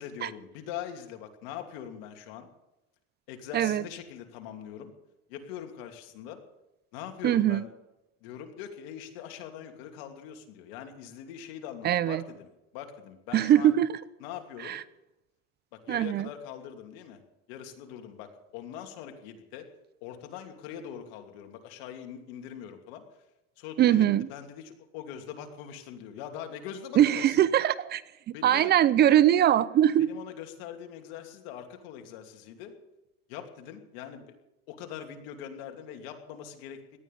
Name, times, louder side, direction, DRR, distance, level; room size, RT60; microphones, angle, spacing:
voice 1, 0.0-2.5 3.3-4.9 5.3-6.4 6.9-7.7 8.2-13.7 14.2-14.7 15.7-17.2 17.5-19.7 20.0-23.0 23.6-27.4 28.3-28.7 30.0-32.7 33.3-34.3 34.7-37.0, left 9 dB, 75° left, 4 dB, 2.8 m, -42 dB
voice 2, 3.5-3.8 7.2-7.6 11.8-12.2 13.3-14.0 14.7-14.8 15.9-16.3 23.8-24.3 27.0-28.0 28.3-30.1, right 11 dB, 35° right, 18 dB, 0.6 m, -22 dB
18.0 x 12.5 x 5.5 m, 0.92 s
supercardioid pair, 135°, 30 cm